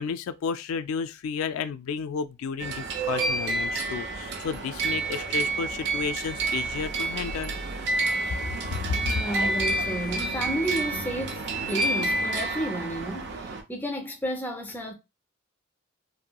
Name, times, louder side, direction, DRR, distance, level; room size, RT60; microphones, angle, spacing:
voice 1, 0.0-7.5 8.7-8.8, left 6 dB, 80° left, 0.3 m, -32 dB
sound 1, 2.6-13.6, right 2 dB, 55° right, 0.5 m, -29 dB
voice 2, 9.1-13.4 13.7-14.9, equal, 10° left, 0.5 m, -31 dB
2.9 x 2.6 x 2.2 m
head